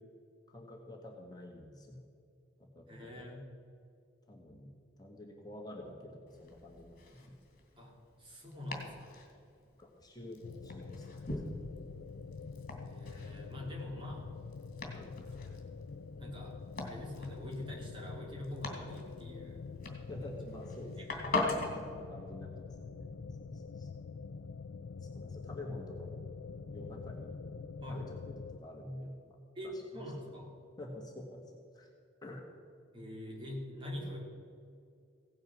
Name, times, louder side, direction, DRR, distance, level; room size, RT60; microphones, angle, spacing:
voice 1, 0.5-2.0 2.7-3.2 4.3-4.7 5.0-7.4 9.8-11.2 11.5-11.8 14.9-15.1 20.0-21.3 21.9-23.0 23.4-23.9 25.0-26.2 26.7-27.4 27.9-29.4 30.8-31.9 32.2-32.4, left 1 dB, 20° left, 0 dB, 1.7 m, -48 dB
voice 2, 2.9-3.5 7.8-7.9 8.2-9.1 12.8-14.3 16.2-16.6 16.8-19.7 20.8-21.5 27.8-28.1 29.5-30.5 32.9-34.2, left 1 dB, 25° right, -2 dB, 3.1 m, -44 dB
Domestic sounds home sounds, 6.3-21.8, left 2 dB, 45° left, 2.5 m, -43 dB
sound 1, 10.4-28.6, left 4 dB, 85° left, 0.5 m, -46 dB
16.5 x 9.5 x 6.3 m, 2.4 s
head